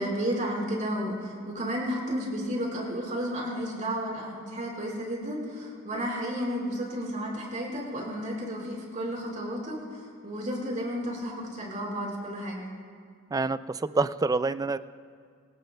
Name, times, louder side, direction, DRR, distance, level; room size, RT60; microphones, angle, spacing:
voice 1, 0.0-12.7, equal, 40° right, -2 dB, 4.7 m, -32 dB
voice 2, 13.3-14.8, right 3 dB, 20° right, 14 dB, 0.3 m, -27 dB
26.0 x 18.0 x 2.3 m, 2.1 s
head